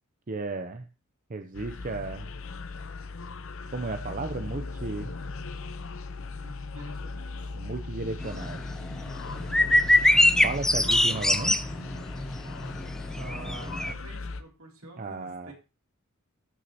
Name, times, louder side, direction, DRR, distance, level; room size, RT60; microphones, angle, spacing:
voice 1, 0.3-0.9 1.3-2.3 3.7-5.1 7.5-8.6 10.4-11.6 15.0-15.5, right 3 dB, 40° right, 7 dB, 0.6 m, -34 dB
sound 1, 1.5-14.4, left 3 dB, 60° left, 0.7 m, -38 dB
voice 2, 6.3-7.3 9.8-10.3 13.1-15.5, right 2 dB, 70° right, 1 dB, 2.7 m, -47 dB
sound 2, 8.2-13.9, left 1 dB, ahead, 0.4 m, -23 dB
14.0 x 6.2 x 2.8 m, 0.29 s
head